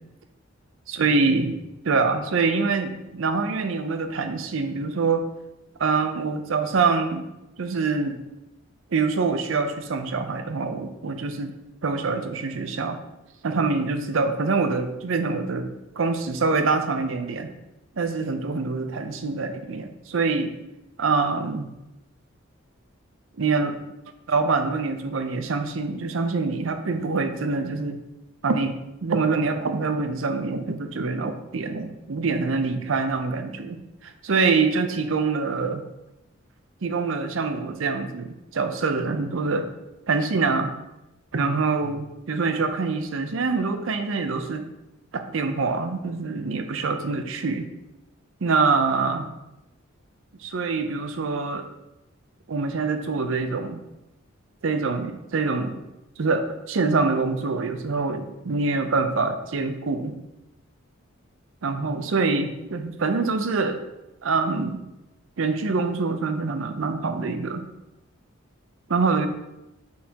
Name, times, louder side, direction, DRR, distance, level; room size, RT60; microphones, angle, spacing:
voice 1, 0.9-1.5 1.8-5.2 5.8-7.3 7.6-8.2 8.9-11.5 11.8-13.0 13.4-15.7 16.0-17.5 18.0-20.5 21.0-21.7 23.4-23.8 24.3-28.0 28.4-28.8 29.0-33.8 34.0-35.9 36.8-39.7 40.1-40.7 41.3-44.7 45.1-47.7 48.4-49.3 50.4-51.7 52.5-53.8 54.6-55.8 56.2-60.1 61.6-63.8 64.2-64.8 65.4-67.6 68.9-69.3, right 4 dB, 70° right, 8 dB, 0.6 m, -25 dB
6.4 x 5.6 x 2.9 m, 0.96 s
head